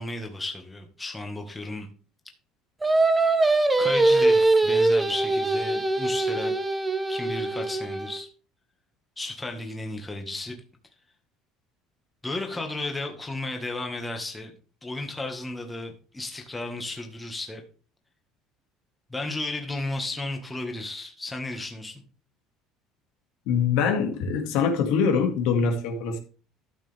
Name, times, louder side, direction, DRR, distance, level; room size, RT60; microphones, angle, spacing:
voice 1, 0.0-1.9 3.8-6.5 7.1-8.3 9.2-10.5 12.2-14.5 14.8-17.6 19.1-21.9, left 2 dB, 10° left, 1.6 m, -33 dB
Singing, 2.8-8.2, right 2 dB, 10° right, 1.0 m, -22 dB
voice 2, 23.5-26.2, left 6 dB, 80° left, 2.2 m, -24 dB
13.0 x 6.7 x 3.5 m
cardioid pair, 150°, 0 cm